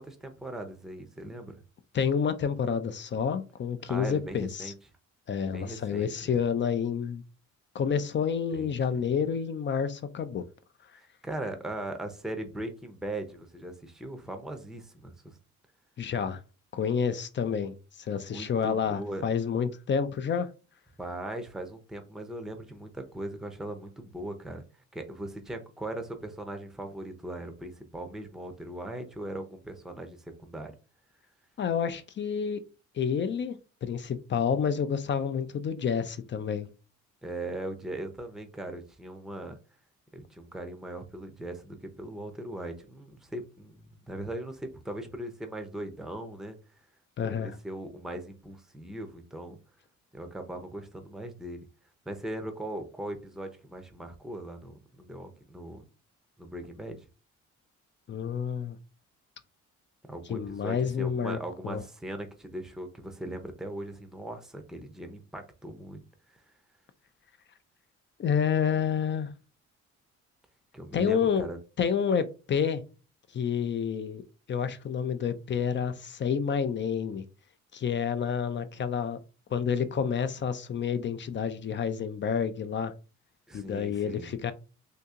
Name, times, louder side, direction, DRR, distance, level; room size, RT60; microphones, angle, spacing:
voice 1, 0.0-1.5 3.9-4.7 5.5-6.4 8.5-9.1 11.0-15.4 18.2-19.2 21.0-24.6 24.9-30.7 37.2-39.6 40.1-46.6 47.3-49.6 50.1-51.7 52.1-55.8 56.4-57.0 60.1-66.0 66.3-66.4 70.7-71.6 83.5-84.3, right 1 dB, ahead, 0.6 m, -39 dB
voice 2, 1.9-4.7 5.3-7.2 7.7-10.4 16.0-16.4 16.7-20.5 31.6-32.6 32.9-36.7 47.2-47.5 58.1-58.8 60.3-61.4 61.6-61.8 68.2-69.3 70.9-71.4 71.8-72.8 73.3-74.2 74.5-77.2 77.7-79.2 79.5-82.9 83.5-84.5, left 7 dB, 40° left, 0.4 m, -29 dB
2.8 x 2.7 x 3.6 m
cardioid pair, 90°, 30 cm